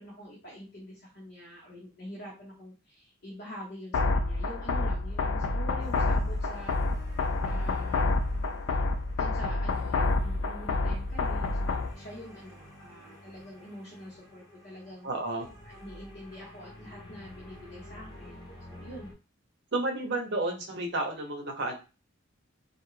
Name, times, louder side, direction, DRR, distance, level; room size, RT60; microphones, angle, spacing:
voice 1, 0.0-6.7 7.4-8.1 9.2-15.1 15.6-19.1, equal, 50° left, -6 dB, 0.9 m, -45 dB
sound 1, 3.9-11.9, left 3 dB, 70° left, 0.3 m, -28 dB
sound 2, 5.5-19.1, left 1 dB, 20° left, 0.9 m, -51 dB
voice 2, 15.0-15.5 19.7-21.8, right 2 dB, 55° right, 1 dB, 0.7 m, -31 dB
2.4 x 2.2 x 3.1 m, 0.31 s
head